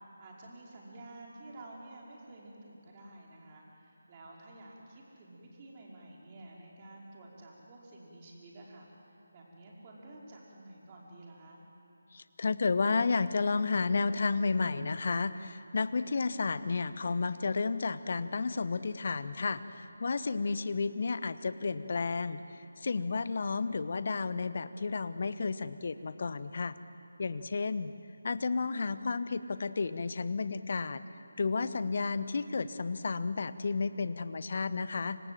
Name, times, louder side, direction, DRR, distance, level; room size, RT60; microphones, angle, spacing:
voice 1, 0.2-8.8 9.3-11.6, right 2 dB, 25° right, -3 dB, 5.0 m, -51 dB
voice 2, 12.1-22.4 22.8-26.8 27.2-27.9 28.2-31.0 31.4-35.2, left 4 dB, 45° left, 13 dB, 1.0 m, -32 dB
29.0 x 26.0 x 7.7 m, 2.8 s
figure-of-eight pair, 155°, 0 cm